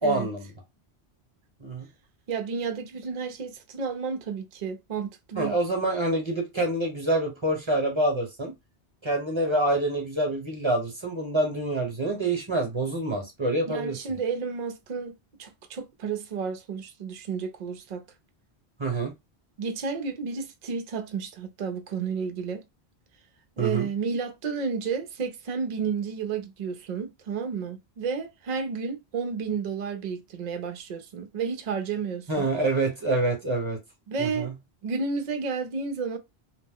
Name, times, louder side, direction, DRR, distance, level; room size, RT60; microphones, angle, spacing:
voice 1, 0.0-0.5 1.6-1.9 5.3-8.5 9.0-14.0 18.8-19.1 23.6-23.9 32.3-33.8 34.2-34.5, right 2 dB, 30° right, 0.9 m, -26 dB
voice 2, 2.3-5.6 13.7-18.0 19.6-22.6 23.6-32.5 34.1-34.5 34.8-36.2, right 5 dB, 50° right, 0.6 m, -31 dB
2.9 x 2.0 x 3.5 m
omnidirectional pair, 1.1 m